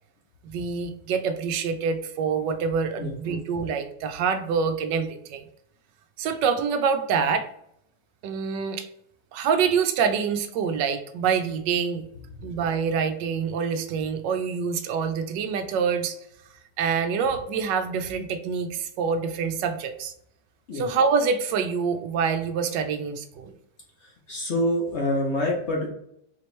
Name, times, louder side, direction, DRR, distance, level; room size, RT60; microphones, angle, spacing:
voice 1, 0.4-5.4 6.2-7.5 8.2-8.9 9.3-12.1 12.4-16.2 16.8-20.1 20.7-23.5, right 6 dB, 85° right, 7 dB, 1.2 m, -26 dB
voice 2, 24.0-25.9, left 1 dB, 50° left, -1 dB, 0.9 m, -26 dB
4.2 x 3.0 x 3.1 m, 0.72 s
omnidirectional pair, 1.9 m